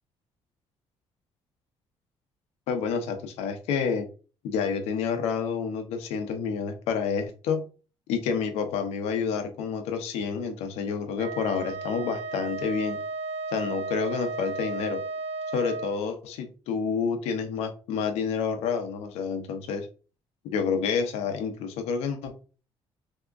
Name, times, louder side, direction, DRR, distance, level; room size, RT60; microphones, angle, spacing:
voice 1, 2.7-4.1 4.4-7.7 8.1-13.0 13.5-15.0 15.5-19.9 20.4-22.4, left 6 dB, 90° left, 7 dB, 0.6 m, -29 dB
Wind instrument woodwind instrument, 11.2-16.0, right 3 dB, 75° right, 0.5 m, -34 dB
3.6 x 2.8 x 2.4 m, 0.35 s
cardioid pair, 90°, 11 cm